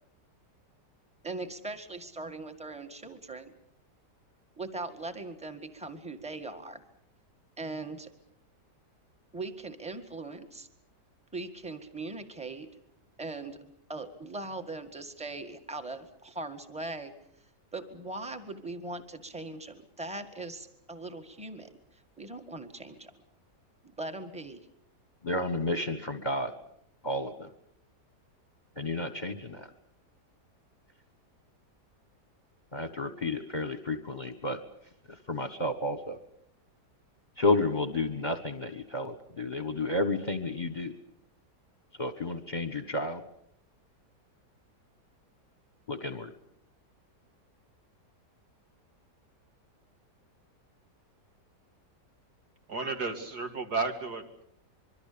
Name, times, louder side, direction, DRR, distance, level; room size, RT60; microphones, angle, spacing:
voice 1, 1.2-3.5 4.6-6.8 7.6-8.1 9.3-10.7 11.3-12.7 13.2-13.6 13.9-17.1 17.7-21.7 22.2-23.2 23.8-24.6, right 2 dB, 5° right, 6 dB, 1.8 m, -40 dB
voice 2, 25.2-26.5 27.0-27.5 28.8-29.7 32.7-34.6 35.3-36.2 37.4-40.9 42.0-43.2 45.9-46.3, left 2 dB, 30° left, 9 dB, 1.4 m, -31 dB
voice 3, 52.7-54.4, right 3 dB, 65° right, 5 dB, 2.9 m, -33 dB
25.5 x 23.5 x 6.9 m, 0.70 s
omnidirectional pair, 1.8 m